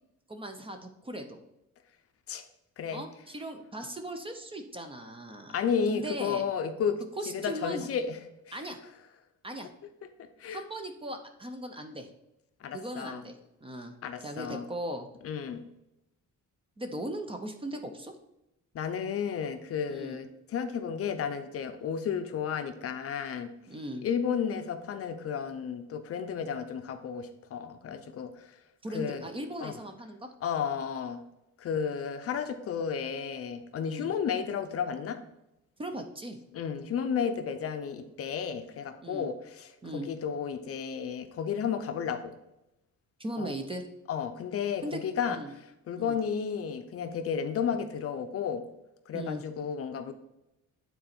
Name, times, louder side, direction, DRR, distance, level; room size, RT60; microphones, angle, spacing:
voice 1, 0.3-1.4 2.9-5.5 5.9-6.4 7.2-7.9 8.5-8.8 9.4-9.7 10.5-12.1 12.7-13.9 14.2-15.1 16.8-18.1 19.9-20.2 23.7-24.1 28.8-30.3 33.8-34.1 35.8-36.4 39.0-39.3 39.8-40.1 43.2-43.9 44.8-45.0 45.3-45.5 46.0-46.2 49.1-49.4, right 1 dB, 15° right, 5 dB, 0.6 m, -38 dB
voice 2, 5.5-8.2 8.5-8.6 10.4-10.6 12.6-13.2 14.0-14.7 15.2-15.6 18.7-23.5 24.0-28.5 28.9-29.2 29.6-29.7 30.4-31.2 31.6-35.2 36.5-42.4 43.4-43.5 44.1-45.4 45.9-48.7 49.1-50.1, left 7 dB, 50° left, 8 dB, 0.6 m, -32 dB
9.2 x 4.0 x 4.3 m, 0.89 s
cardioid pair, 175°, 31 cm